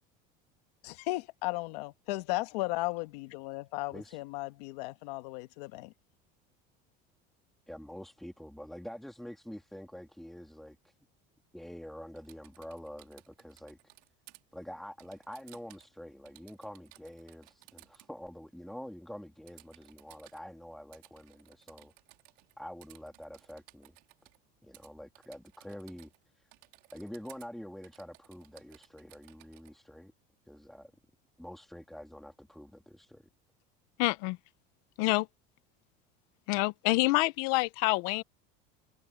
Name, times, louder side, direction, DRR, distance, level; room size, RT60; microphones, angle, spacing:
voice 1, 0.8-5.9, left 21 dB, 90° left, 1.5 m, -35 dB
voice 2, 7.7-10.9 11.5-13.8 14.5-21.9 22.6-24.0 24.6-26.5 26.9-30.1 30.5-30.9 31.4-33.3, equal, ahead, 2.7 m, -46 dB
Typing, 12.2-14.4 15.0-16.0 16.3-18.1 19.5-20.4 20.9-22.5 22.8-24.4 24.7-24.9 25.1-26.2 26.5-27.5 27.8-29.7, right 24 dB, 70° right, 3.5 m, -59 dB
voice 3, 34.0-34.4 35.0-35.3 36.5-38.2, left 22 dB, 70° left, 1.0 m, -27 dB
cardioid pair, 165°, 20 cm